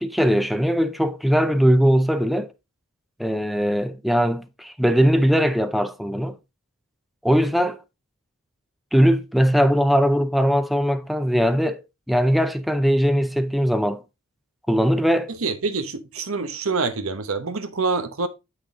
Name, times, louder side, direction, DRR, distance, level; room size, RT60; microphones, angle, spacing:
voice 1, 0.0-2.5 3.2-6.4 7.2-7.8 8.9-11.8 12.1-14.0 14.7-15.3, equal, ahead, 0.5 m, -20 dB
voice 2, 15.3-18.3, right 4 dB, 75° right, 1.0 m, -26 dB
8.0 x 6.3 x 3.6 m
head